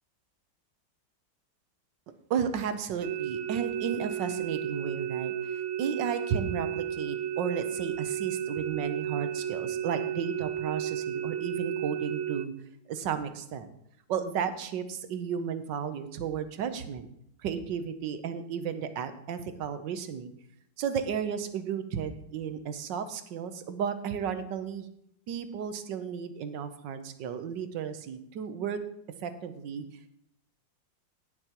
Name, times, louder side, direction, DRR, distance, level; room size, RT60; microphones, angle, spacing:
voice 1, 2.3-5.3 5.8-12.5 12.9-13.7 14.1-17.1 17.4-20.3 20.8-24.9 25.3-28.8 29.2-29.8, right 7 dB, 70° right, 10 dB, 1.4 m, -33 dB
sound 1, 3.0-12.5, right 9 dB, 90° right, 0.7 m, -33 dB
18.0 x 6.8 x 2.9 m, 0.74 s
omnidirectional pair, 2.1 m